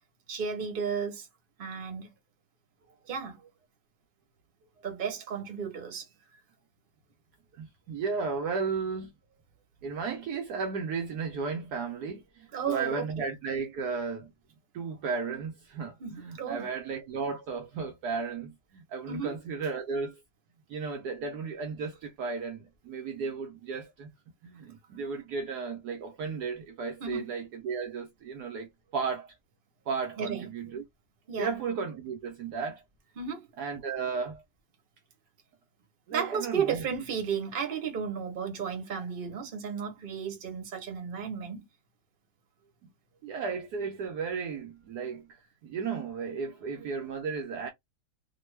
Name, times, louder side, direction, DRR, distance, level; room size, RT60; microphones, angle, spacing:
voice 1, 0.3-1.3 1.6-2.1 3.1-3.4 4.8-6.1 12.5-13.3 16.0-16.7 19.1-19.3 27.0-27.3 30.2-30.5 31.3-31.6 33.2-33.5 36.1-41.7, right 6 dB, 35° right, 0.9 m, -33 dB
voice 2, 7.6-9.1 9.8-14.3 14.7-20.2 20.7-24.1 24.4-29.4 29.9-30.8 31.4-32.8 33.6-34.4 36.1-36.9 42.8-42.9 43.2-47.7, right 5 dB, 70° right, 1.1 m, -34 dB
3.0 x 2.2 x 3.1 m
omnidirectional pair, 2.0 m